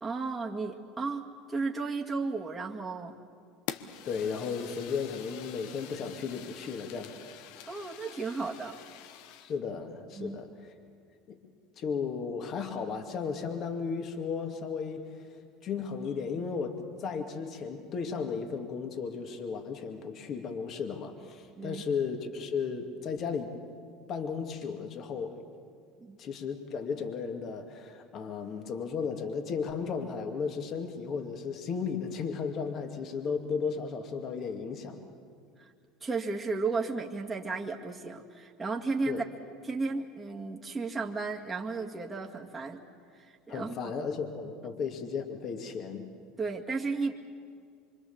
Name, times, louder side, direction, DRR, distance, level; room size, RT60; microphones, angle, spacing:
voice 1, 0.0-3.2 7.7-8.8 10.1-10.4 21.6-21.8 26.0-26.2 35.6-35.7 36.0-39.3 39.6-42.8 43.1-43.9 46.4-47.1, right 4 dB, 20° right, -1 dB, 1.9 m, -34 dB
Fire, 3.7-9.6, left 11 dB, 65° left, 1.0 m, -45 dB
voice 2, 4.1-7.1 9.4-10.7 11.3-11.4 11.8-15.3 15.6-23.5 24.1-25.4 26.2-35.0 39.1-39.2 43.5-46.1, left 5 dB, 50° left, 5 dB, 2.4 m, -35 dB
26.0 x 24.0 x 7.2 m, 2.2 s
hypercardioid pair, 80°, 0 cm